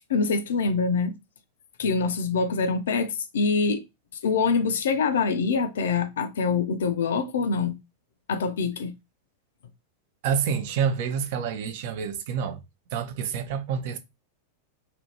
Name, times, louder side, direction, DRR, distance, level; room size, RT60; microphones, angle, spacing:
voice 1, 0.1-1.1 1.8-3.8 4.2-7.8 8.3-8.9, left 4 dB, 60° left, 0.4 m, -25 dB
voice 2, 10.2-12.6 12.9-14.0, right 7 dB, 50° right, 0.5 m, -28 dB
2.8 x 2.5 x 2.7 m
figure-of-eight pair, 90°, 0 cm